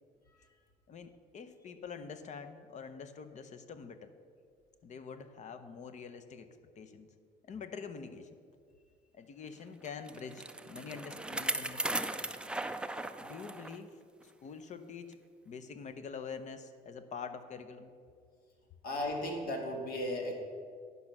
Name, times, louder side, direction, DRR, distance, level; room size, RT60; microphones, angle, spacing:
voice 1, 0.9-4.1 4.8-6.5 6.8-7.1 7.4-8.3 9.1-12.2 13.2-15.2 15.4-17.9, left 5 dB, 45° left, 10 dB, 0.8 m, -46 dB
Bicycle, 9.8-13.8 14.2-14.3 15.1-15.2, right 2 dB, 5° right, 0.4 m, -37 dB
voice 2, 18.8-20.3, left 1 dB, 60° left, 1 dB, 2.2 m, -35 dB
10.5 x 5.4 x 6.0 m, 2.2 s
cardioid pair, 110°, 17 cm